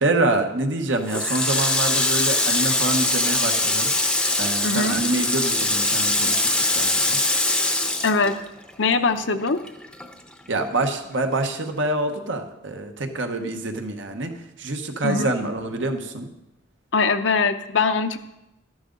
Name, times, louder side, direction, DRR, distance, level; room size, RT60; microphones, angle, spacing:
voice 1, 0.0-3.9 4.4-7.2 10.5-14.3 14.6-16.3, right 2 dB, 75° right, 5 dB, 1.1 m, -26 dB
Water tap faucet, 1.1-8.9 9.2-10.6, left 2 dB, 5° left, 0.7 m, -22 dB
voice 2, 4.6-5.0 8.0-8.3 8.8-9.6 15.0-15.3 16.9-18.2, left 4 dB, 70° left, 8 dB, 0.7 m, -21 dB
12.5 x 11.0 x 3.9 m, 0.95 s
head